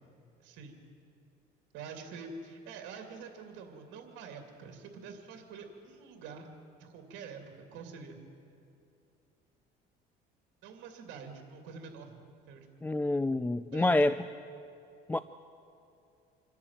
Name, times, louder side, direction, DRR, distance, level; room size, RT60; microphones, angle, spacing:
voice 1, 0.4-0.8 1.7-6.5 6.8-8.2 10.6-12.9 13.7-14.3, right 5 dB, 80° right, 4 dB, 2.7 m, -46 dB
voice 2, 12.8-14.2 15.1-15.2, left 2 dB, 10° left, 13 dB, 0.4 m, -27 dB
26.5 x 11.0 x 8.9 m, 2.7 s
cardioid pair, 115°, 19 cm